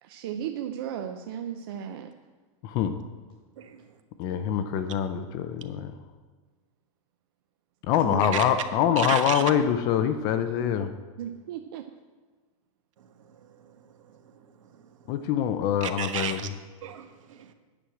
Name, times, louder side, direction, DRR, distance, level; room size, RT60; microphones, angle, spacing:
voice 1, 0.0-2.1 8.0-8.3 11.2-11.8, right 9 dB, 45° right, 5 dB, 0.5 m, -35 dB
voice 2, 2.6-3.0 4.2-5.9 7.8-10.9 15.1-16.5, left 9 dB, 20° left, 10 dB, 0.4 m, -25 dB
voice 3, 9.0-9.4 13.3-13.7 14.1-14.2 15.8-16.5 16.8-17.5, right 9 dB, 70° right, 8 dB, 1.2 m, -34 dB
10.0 x 6.2 x 7.7 m, 1.4 s
supercardioid pair, 180°, 17 cm